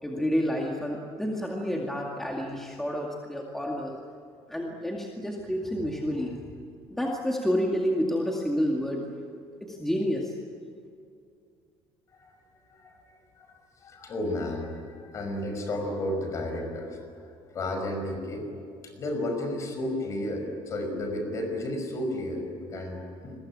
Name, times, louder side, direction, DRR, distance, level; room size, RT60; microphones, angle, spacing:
voice 1, 0.0-4.0 4.5-6.4 6.9-9.1 9.6-10.3, equal, 5° left, -1 dB, 2.1 m, -29 dB
voice 2, 12.7-13.0 13.4-17.0 17.5-18.5 18.8-23.4, left 1 dB, 35° left, 5 dB, 5.7 m, -32 dB
29.0 x 22.5 x 8.7 m, 2.4 s
cardioid pair, 165°, 9 cm